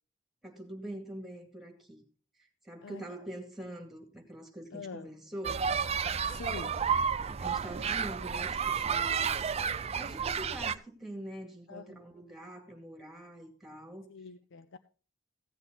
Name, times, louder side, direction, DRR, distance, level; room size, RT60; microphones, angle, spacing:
voice 1, 0.4-2.0 2.4-5.6 7.1-9.4 9.9-14.1, right 1 dB, ahead, 2.3 m, -44 dB
voice 2, 4.7-5.1 6.2-6.8 11.7-12.0 14.1-14.8, left 4 dB, 65° left, 0.5 m, -45 dB
sound 1, 5.4-10.7, right 6 dB, 30° right, 0.4 m, -31 dB
15.5 x 8.2 x 3.9 m
head